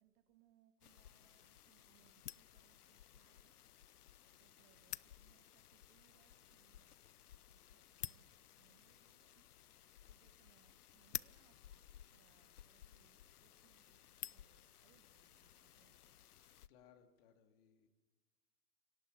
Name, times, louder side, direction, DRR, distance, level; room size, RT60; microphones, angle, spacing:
voice 1, 0.0-3.6 4.3-7.0 7.5-11.8 12.1-16.2, right 11 dB, 30° right, 10 dB, 1.5 m, -75 dB
sound 1, 0.8-16.7, left 11 dB, 70° left, 0.7 m, -54 dB
voice 2, 16.7-17.9, left 8 dB, 35° left, 6 dB, 2.6 m, -66 dB
27.5 x 18.5 x 7.1 m, 1.2 s
figure-of-eight pair, 120°, 48 cm